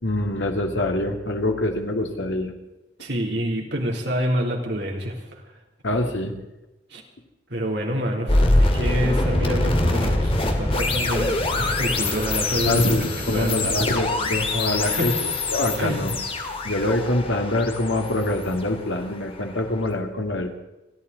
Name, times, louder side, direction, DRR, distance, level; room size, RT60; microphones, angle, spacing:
voice 1, 0.0-2.5 5.8-6.3 12.6-16.2 16.6-20.6, left 1 dB, 85° left, 4 dB, 2.3 m, -25 dB
voice 2, 3.0-5.4 6.9-7.0 7.5-12.8 13.2-13.8 14.8-15.3 15.8-16.0, equal, 70° right, 0 dB, 3.3 m, -27 dB
sound 1, 8.3-19.3, left 2 dB, 30° left, 1.8 m, -24 dB
30.0 x 11.5 x 4.1 m, 0.99 s
head